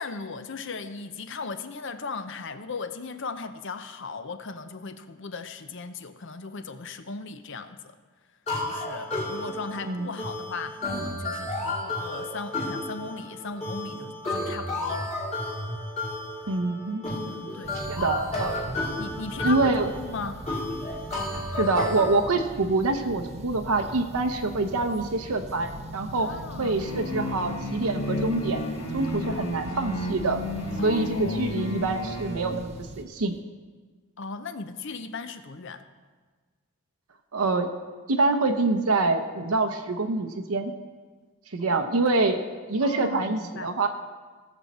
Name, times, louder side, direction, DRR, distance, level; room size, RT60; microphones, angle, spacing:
voice 1, 0.0-8.0 8.6-15.2 17.5-17.8 19.0-19.7 20.0-20.4 26.1-26.9 29.1-29.5 30.8-31.5 34.2-35.8 41.6-42.1 42.8-43.7, left 4 dB, 55° left, 10 dB, 0.7 m, -37 dB
sound 1, 8.5-22.2, left 2 dB, 30° left, 2.6 m, -32 dB
voice 2, 16.5-17.0 17.7-18.6 19.4-19.9 21.6-26.3 26.6-28.6 28.9-30.4 30.8-32.7 33.0-33.4 37.3-37.7 38.1-40.7 41.5-42.4 42.7-43.9, right 3 dB, 85° right, 5 dB, 0.8 m, -25 dB
sound 2, 17.6-33.0, right 2 dB, 30° right, 0.5 m, -41 dB
sound 3, 26.8-32.6, left 1 dB, 80° left, 1.6 m, -32 dB
17.5 x 7.2 x 4.2 m, 1.4 s
head